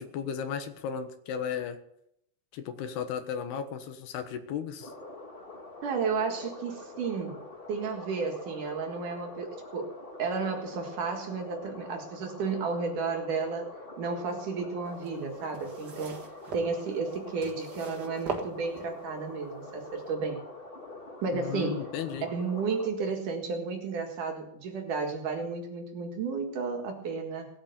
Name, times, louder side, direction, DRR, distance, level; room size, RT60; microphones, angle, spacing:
voice 1, 0.0-1.8 2.5-4.9 21.3-22.3, left 8 dB, 80° left, 8 dB, 3.4 m, -35 dB
sound 1, 4.8-22.9, left 2 dB, 30° left, 0.9 m, -45 dB
voice 2, 5.8-7.4 7.7-13.7 14.0-16.2 16.5-20.4 21.2-21.9 22.2-27.5, right 4 dB, 60° right, 4 dB, 3.0 m, -32 dB
sound 2, 14.9-19.2 19.9-20.0, right 4 dB, 75° right, 0.9 m, -40 dB
19.0 x 8.8 x 6.9 m, 0.75 s
omnidirectional pair, 4.6 m